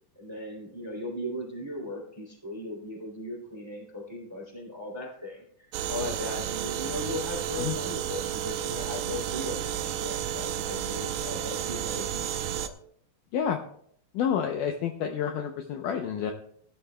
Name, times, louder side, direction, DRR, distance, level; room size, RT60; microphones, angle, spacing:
voice 1, 0.1-12.7, left 1 dB, 10° right, -1 dB, 1.9 m, -38 dB
sound 1, 5.7-12.7, right 10 dB, 80° right, 2.2 m, -32 dB
voice 2, 14.1-16.3, left 8 dB, 85° left, 5 dB, 1.8 m, -29 dB
19.0 x 11.5 x 2.2 m, 0.64 s
omnidirectional pair, 4.7 m